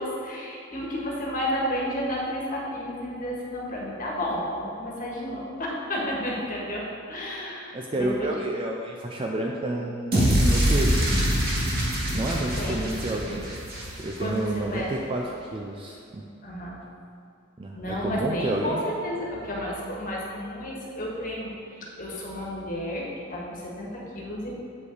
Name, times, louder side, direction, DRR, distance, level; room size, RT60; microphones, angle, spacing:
voice 1, 0.0-8.2 12.6-12.9 14.2-14.9 16.4-16.8 17.7-21.5 22.0-24.6, equal, 45° left, -3 dB, 1.5 m, -32 dB
voice 2, 7.7-11.1 12.1-13.5 13.9-16.2 17.6-18.8, right 1 dB, 25° right, 0 dB, 0.4 m, -30 dB
sound 1, 10.1-14.4, equal, 50° right, 1.7 m, -24 dB
7.7 x 5.9 x 3.9 m, 2.6 s
head